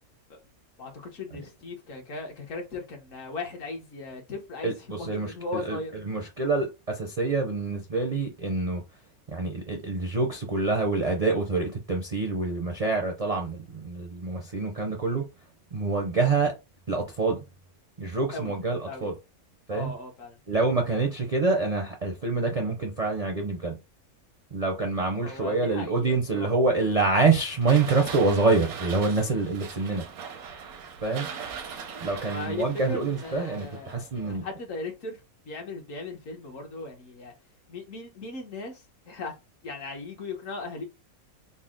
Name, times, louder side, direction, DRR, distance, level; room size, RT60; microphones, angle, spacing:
voice 1, 0.8-5.9 18.3-18.5 18.8-19.1 19.7-20.4 25.2-26.5 32.3-34.0 34.3-37.3 37.7-39.3 39.6-40.8, left 3 dB, 65° left, 1.3 m, -37 dB
voice 2, 4.6-5.8 6.1-8.8 9.3-15.2 15.7-16.5 16.9-17.4 18.0-19.1 19.7-19.9 20.5-23.7 24.5-30.0 31.0-31.3 32.0-34.4, right 3 dB, 50° right, 0.4 m, -26 dB
sound 1, 26.9-34.5, right 6 dB, 90° right, 1.2 m, -41 dB
4.0 x 2.1 x 3.6 m
omnidirectional pair, 1.5 m